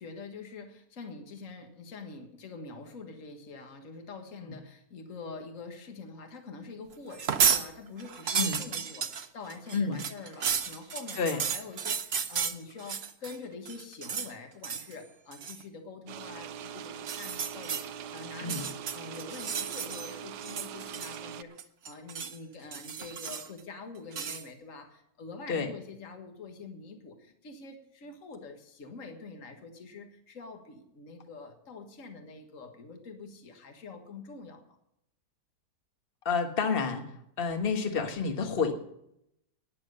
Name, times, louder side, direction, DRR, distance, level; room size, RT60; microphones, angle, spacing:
voice 1, 0.0-34.8, left 4 dB, 50° left, 5 dB, 1.9 m, -45 dB
sound 1, 7.1-7.6 8.0-13.4 13.6-14.3 14.6-14.9 15.3-15.6 16.9-17.8 18.4-20.1 20.4-21.3 21.6-22.4 22.7-23.6 24.1-24.4, right 7 dB, 50° right, 0.9 m, -32 dB
sound 2, 16.1-21.4, right 8 dB, 85° right, 1.2 m, -42 dB
voice 2, 36.2-37.0 37.4-38.7, left 5 dB, 35° left, 5 dB, 1.5 m, -29 dB
12.5 x 10.0 x 6.5 m, 0.78 s
omnidirectional pair, 1.7 m